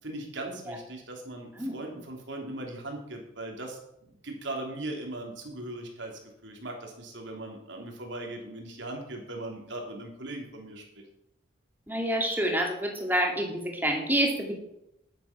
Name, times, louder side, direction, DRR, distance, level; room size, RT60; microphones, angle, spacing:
voice 1, 0.0-3.8 4.2-11.0, right 2 dB, 70° right, 1 dB, 3.3 m, -39 dB
voice 2, 11.9-14.5, right 1 dB, 10° right, 2 dB, 2.3 m, -27 dB
11.5 x 9.6 x 6.0 m, 0.80 s
head